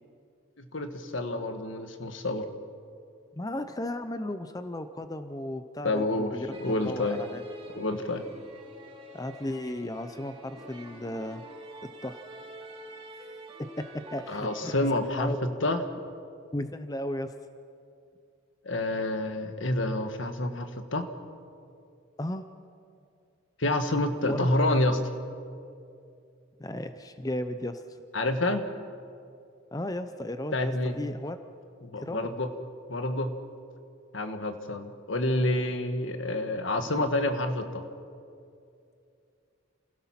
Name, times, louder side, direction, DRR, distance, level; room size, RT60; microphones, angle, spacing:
voice 1, 0.6-2.5 5.8-6.3 6.6-7.2 7.7-8.2 14.3-15.3 15.6-15.8 18.6-21.1 23.6-25.0 28.1-28.6 30.5-30.9 31.8-32.5 32.9-33.3 34.1-37.8, left 1 dB, 70° left, 8 dB, 1.4 m, -28 dB
voice 2, 3.3-7.4 9.1-11.4 12.0-12.2 13.6-13.7 13.9-14.7 15.1-15.4 16.5-17.3 22.2-22.4 24.3-24.5 26.6-27.8 29.7-31.4 32.0-32.3 36.8-37.1, left 1 dB, 20° left, 10 dB, 0.6 m, -35 dB
sound 1, 6.5-14.9, right 1 dB, 25° right, 2.6 m, -46 dB
27.5 x 16.5 x 5.9 m, 2.5 s
head